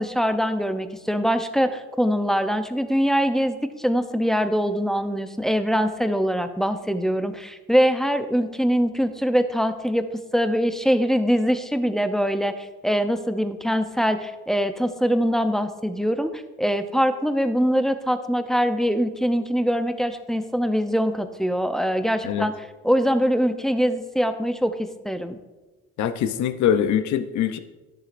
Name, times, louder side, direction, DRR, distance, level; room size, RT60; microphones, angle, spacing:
voice 1, 0.0-10.0 10.3-22.5 22.8-25.4, equal, ahead, 9 dB, 0.6 m, -23 dB
voice 2, 26.0-27.6, left 9 dB, 70° left, 11 dB, 0.7 m, -23 dB
11.0 x 7.3 x 2.5 m, 1.2 s
supercardioid pair, 75°, 31 cm